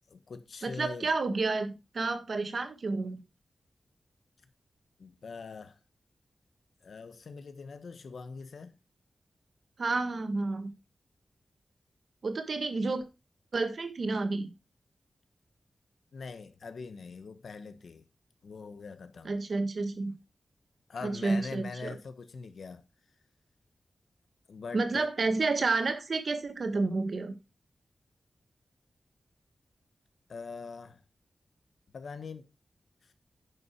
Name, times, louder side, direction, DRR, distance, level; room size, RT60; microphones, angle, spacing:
voice 1, 0.1-1.1 5.0-5.8 6.8-8.7 16.1-18.1 18.4-19.3 20.9-22.8 24.5-25.0 30.3-31.0 31.9-32.5 33.0-33.1, left 4 dB, 70° left, 1.3 m, -43 dB
voice 2, 0.6-3.2 9.8-10.7 12.2-13.1 13.5-14.5 19.2-20.1 21.0-22.0 24.7-27.3, right 3 dB, 50° right, 1.6 m, -30 dB
10.0 x 6.9 x 4.6 m
wide cardioid pair, 170°, 0 cm